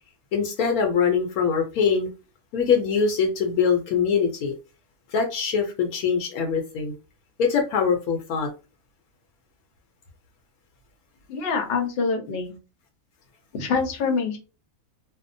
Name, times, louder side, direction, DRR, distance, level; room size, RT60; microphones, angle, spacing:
voice 1, 0.3-2.1 2.5-4.5 5.1-6.9 7.4-8.5, left 6 dB, 80° left, 1.0 m, -23 dB
voice 2, 11.3-12.6 13.5-14.4, left 5 dB, 55° left, 0.7 m, -25 dB
2.6 x 2.1 x 2.5 m
omnidirectional pair, 1.5 m